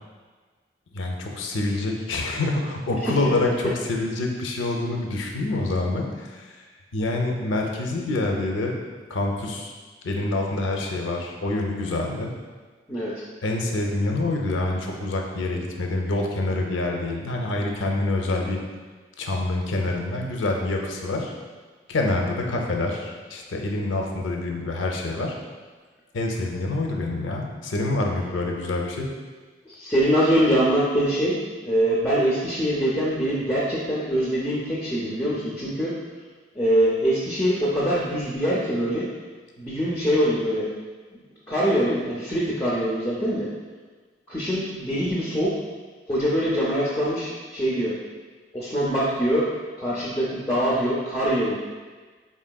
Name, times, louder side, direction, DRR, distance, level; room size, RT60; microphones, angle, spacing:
voice 1, 0.9-6.6 6.9-8.7 9.1-9.7 10.0-12.3 13.4-18.6 19.2-21.3 21.9-25.3 26.1-29.1, left 2 dB, 80° left, 1 dB, 0.5 m, -26 dB
voice 2, 29.7-31.4 31.6-36.0 36.6-39.1 39.6-40.7 41.5-43.5 44.3-45.6 46.1-47.9 48.5-49.5 49.8-51.5, equal, 15° left, -6 dB, 0.4 m, -23 dB
3.9 x 3.7 x 2.2 m, 1.4 s
head